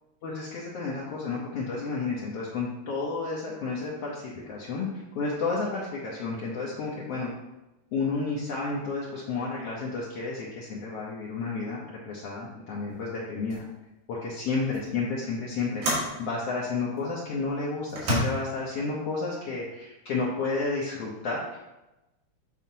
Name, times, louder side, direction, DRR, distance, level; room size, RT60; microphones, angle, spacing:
voice 1, 0.2-4.9 5.1-7.3 7.9-13.7 14.1-21.6, left 4 dB, 65° left, -5 dB, 1.8 m, -31 dB
sound 1, 12.9-13.1 13.5-13.7 14.7-14.9 15.8-16.2 17.0-17.1 17.9-18.2, right 1 dB, 80° right, 3.2 m, -29 dB
9.1 x 4.8 x 2.8 m, 0.99 s
omnidirectional pair, 3.4 m